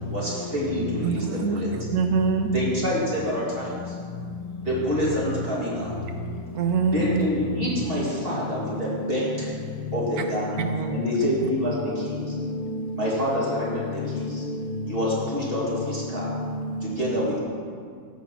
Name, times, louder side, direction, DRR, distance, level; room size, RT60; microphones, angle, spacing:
voice 1, 0.1-1.7 2.5-3.9 4.6-5.9 6.9-9.5 9.9-10.6 10.9-12.2 12.9-14.4 14.9-16.3 16.8-17.4, equal, 35° right, 2.9 m, -27 dB
voice 2, 1.0-2.5 6.5-7.1 10.2-10.3 10.6-11.0, right 5 dB, 75° right, 1.1 m, -25 dB
voice 3, 10.5-11.1 11.9-12.9 14.1-14.3 16.1-16.8, left 2 dB, 80° left, 1.2 m, -31 dB
14.0 x 5.2 x 5.7 m
omnidirectional pair, 1.6 m